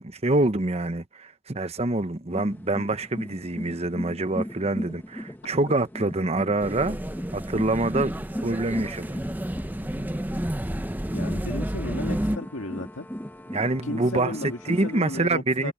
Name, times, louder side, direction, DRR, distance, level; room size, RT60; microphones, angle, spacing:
voice 1, 0.0-7.0 7.3-8.1 8.4-9.2 13.5-15.7, right 2 dB, 30° right, 1.0 m, -26 dB
sound 1, 2.3-15.2, equal, 10° left, 1.2 m, -38 dB
sound 2, 6.6-12.4, right 1 dB, 10° right, 0.7 m, -30 dB
voice 2, 11.1-13.1 13.8-15.7, left 2 dB, 70° left, 2.0 m, -34 dB
head